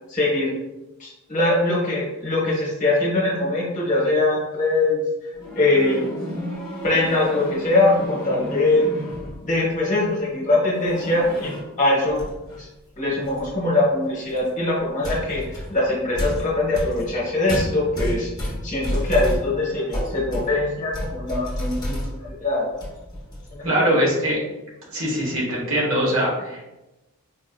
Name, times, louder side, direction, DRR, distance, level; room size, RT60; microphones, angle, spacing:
voice 1, 0.1-0.5 1.0-5.0 5.5-6.0 6.8-8.9 9.4-12.2 12.6-12.7 13.0-22.7 23.5-24.0, left 2 dB, 35° left, -5 dB, 1.1 m, -22 dB
sound 1, 5.3-9.6 10.7-11.7 12.1-12.6 13.2-13.5 14.3-14.5 15.0-22.4 22.7-23.5, equal, 20° left, 0.8 m, -31 dB
voice 2, 23.6-24.4 24.9-26.6, equal, 65° right, -4 dB, 1.1 m, -22 dB
4.1 x 2.7 x 2.2 m, 1.0 s
head